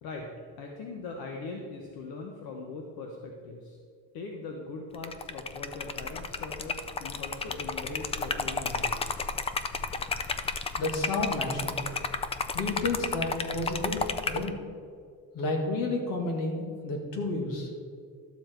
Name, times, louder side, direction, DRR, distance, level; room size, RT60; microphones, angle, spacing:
voice 1, 0.6-3.8 4.1-9.1, left 3 dB, 80° left, 1 dB, 1.2 m, -40 dB
Liquid, 4.9-14.5, left 4 dB, 20° left, 0.3 m, -32 dB
voice 2, 10.8-11.8 12.5-14.5 15.3-17.7, left 2 dB, 65° left, 1 dB, 2.1 m, -31 dB
12.5 x 7.3 x 4.5 m, 2.2 s
cardioid pair, 150°, 36 cm